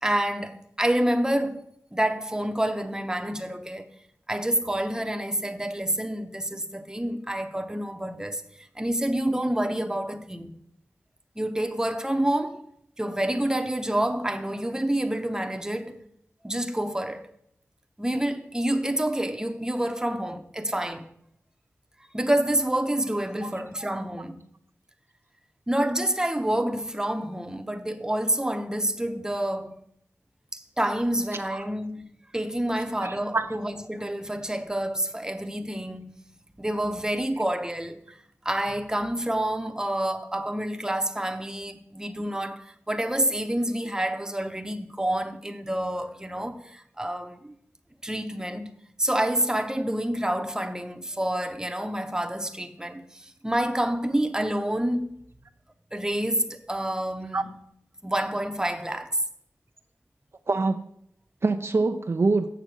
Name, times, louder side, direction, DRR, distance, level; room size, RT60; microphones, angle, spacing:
voice 1, 0.0-3.9 4.3-10.5 11.4-12.6 13.0-16.0 16.4-17.2 18.0-21.1 22.1-24.4 25.7-29.8 30.5-36.1 36.6-38.0 38.4-47.5 48.0-48.7 49.0-55.2 55.9-57.6 58.0-59.2, right 1 dB, 10° right, 0.8 m, -28 dB
voice 2, 33.0-33.6 57.3-57.4 60.5-60.8 61.4-62.5, right 3 dB, 55° right, 0.5 m, -25 dB
6.9 x 6.8 x 6.2 m
cardioid pair, 50°, 5 cm